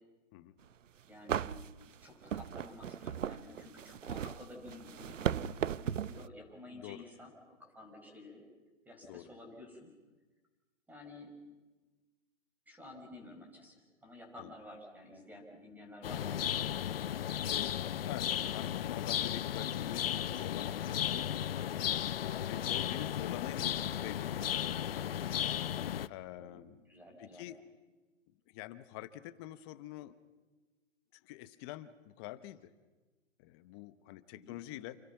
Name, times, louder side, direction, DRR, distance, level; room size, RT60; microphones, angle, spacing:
sound 1, 0.7-0.8 1.3-6.3, right 9 dB, 75° right, 0.8 m, -37 dB
voice 1, 1.1-8.4 8.9-9.9 10.9-11.3 12.7-16.8 26.4-27.5 34.3-34.6, left 2 dB, 5° right, 2 dB, 5.3 m, -52 dB
voice 2, 6.7-7.0 9.1-9.3 14.4-14.5 17.5-21.5 22.0-25.1 26.1-26.8 27.2-27.6 28.5-30.2 31.1-32.7 33.4-35.0, left 15 dB, 20° left, 14 dB, 0.9 m, -46 dB
sound 2, 16.0-26.1, left 10 dB, 50° left, 0.9 m, -35 dB
29.5 x 28.5 x 5.9 m, 1.2 s
hypercardioid pair, 150°, 38 cm